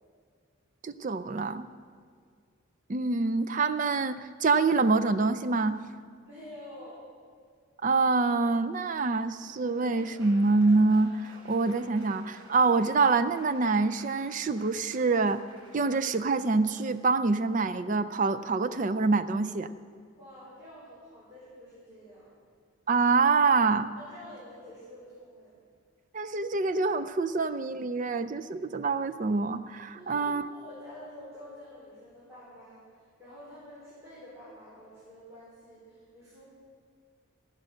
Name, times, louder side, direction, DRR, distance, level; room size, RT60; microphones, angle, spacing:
voice 1, 0.8-1.7 2.9-5.8 7.8-15.4 15.7-19.7 22.9-23.9 26.1-30.5, right 3 dB, 35° right, 11 dB, 0.4 m, -26 dB
voice 2, 6.3-7.0 20.2-22.3 23.9-25.5 29.9-36.4, equal, 15° right, -11 dB, 4.0 m, -48 dB
Laughter / Applause, 9.1-17.0, right 1 dB, 80° right, 4.1 m, -54 dB
16.5 x 7.5 x 6.3 m, 2.1 s
head